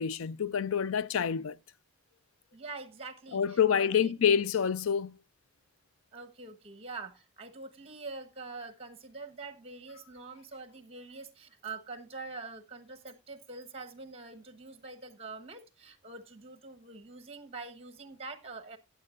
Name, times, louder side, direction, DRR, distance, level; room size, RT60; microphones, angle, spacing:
voice 1, 0.0-1.6 3.3-5.2, left 7 dB, 85° left, 0.5 m, -27 dB
voice 2, 2.5-4.1 6.1-18.8, right 3 dB, 30° right, 1.2 m, -45 dB
15.0 x 9.1 x 2.5 m
head